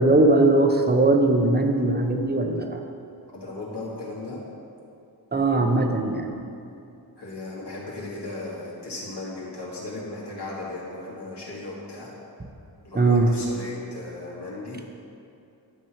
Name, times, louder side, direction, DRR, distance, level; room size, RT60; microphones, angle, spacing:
voice 1, 0.0-2.8 5.3-6.3 12.9-13.3, right 2 dB, 25° right, 4 dB, 0.8 m, -20 dB
voice 2, 3.3-4.4 7.2-12.1 12.8-14.8, left 2 dB, 80° left, -5 dB, 2.1 m, -36 dB
10.5 x 6.2 x 4.4 m, 2.6 s
wide cardioid pair, 85°, 40 cm